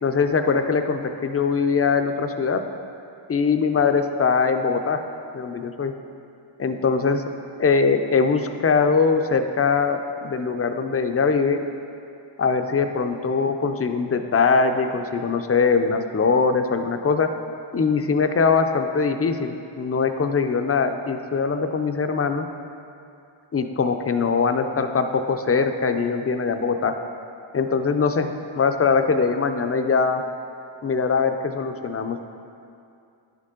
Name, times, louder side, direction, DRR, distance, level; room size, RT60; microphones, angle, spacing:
voice 1, 0.0-2.6 3.3-5.0 5.3-5.9 6.6-7.2 7.6-11.6 12.4-17.3 17.7-22.5 23.5-26.9 27.5-28.3 28.5-30.2 30.8-32.3, left 5 dB, 30° left, 7 dB, 0.5 m, -22 dB
10.5 x 6.6 x 3.7 m, 2.5 s
wide cardioid pair, 95°, 48 cm